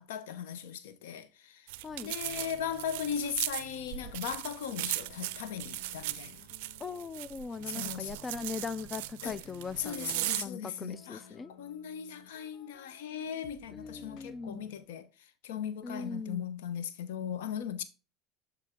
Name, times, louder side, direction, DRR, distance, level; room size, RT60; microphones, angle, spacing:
voice 1, 0.0-1.7 2.0-6.4 7.7-8.1 9.2-9.3 9.8-11.2 11.6-15.1 15.4-17.8, left 8 dB, 80° left, 0.9 m, -38 dB
sound 1, 1.7-10.5, right 17 dB, 75° right, 0.4 m, -38 dB
voice 2, 1.8-2.1 6.8-11.5 13.7-14.7 15.8-16.4, left 5 dB, 30° left, 0.4 m, -40 dB
sound 2, 2.2-14.9, left 6 dB, 60° left, 1.1 m, -57 dB
11.0 x 3.8 x 3.6 m
hypercardioid pair, 85°, 0 cm